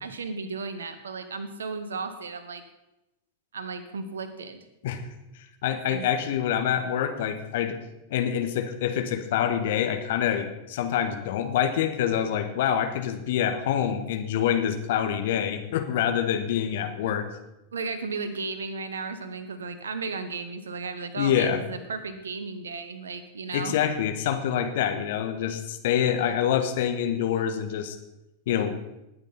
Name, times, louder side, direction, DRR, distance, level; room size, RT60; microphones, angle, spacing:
voice 1, 0.0-2.6 3.5-4.6 5.9-6.1 17.7-23.8, right 4 dB, 70° right, 11 dB, 1.3 m, -34 dB
voice 2, 5.6-7.8 8.1-17.3 21.2-21.6 23.5-28.0 28.5-28.8, left 9 dB, 55° left, 7 dB, 1.4 m, -26 dB
19.0 x 9.0 x 4.2 m, 0.92 s
figure-of-eight pair, 90°, 0 cm